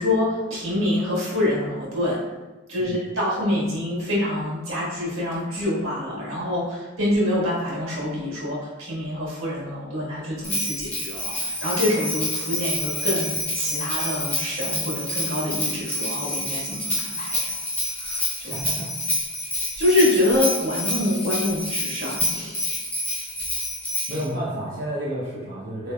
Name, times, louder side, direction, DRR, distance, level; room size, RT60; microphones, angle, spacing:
voice 1, 0.0-2.2 2.7-17.6 18.0-18.5 19.8-22.8 24.1-24.2, left 1 dB, 80° right, -6 dB, 1.4 m, -26 dB
Bell, 10.4-24.3, left 1 dB, 10° left, 0.6 m, -28 dB
voice 2, 18.4-18.9 24.1-25.9, equal, 60° right, -8 dB, 0.7 m, -31 dB
3.9 x 3.2 x 2.2 m, 1.1 s
head